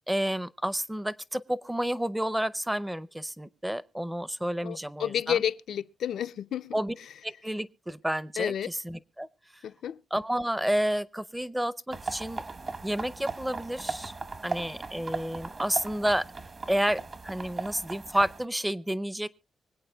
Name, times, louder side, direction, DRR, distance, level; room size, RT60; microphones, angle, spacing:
voice 1, 0.1-5.4 6.7-6.9 7.2-9.3 10.1-12.4 12.8-14.1 14.4-16.2 16.7-19.3, right 1 dB, 5° right, 0.6 m, -30 dB
voice 2, 4.6-6.8 8.4-8.7 9.6-10.0, left 9 dB, 85° left, 0.5 m, -31 dB
sound 1, 11.9-18.4, right 3 dB, 40° right, 1.0 m, -38 dB
25.0 x 8.5 x 2.3 m
cardioid pair, 120°, 0 cm